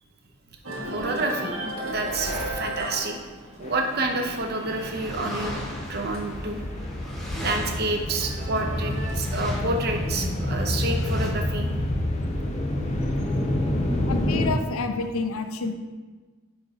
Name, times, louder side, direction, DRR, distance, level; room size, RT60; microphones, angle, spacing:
sound 1, 0.6-6.9 7.2-9.5, right 1 dB, 85° right, 1.4 m, -36 dB
voice 1, 0.9-1.6 1.8-3.2 3.6-5.6 5.9-6.6 7.4-11.7, right 2 dB, 50° right, 3 dB, 0.7 m, -28 dB
sound 2, 1.5-4.2 4.8-11.3, left 1 dB, ahead, 0.9 m, -38 dB
sound 3, 3.6-14.5, left 1 dB, 35° left, 0.8 m, -28 dB
voice 2, 14.1-15.7, left 4 dB, 75° left, 7 dB, 0.5 m, -28 dB
5.2 x 4.8 x 4.1 m, 1.3 s
head